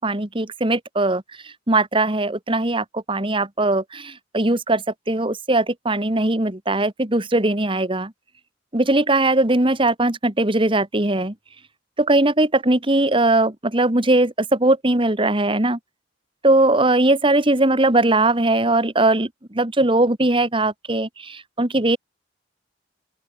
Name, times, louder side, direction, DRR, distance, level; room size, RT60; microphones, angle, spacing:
voice 1, 0.0-8.1 8.7-11.3 12.0-15.8 16.4-22.0, right 2 dB, 30° right, 1.9 m, -20 dB
open air
head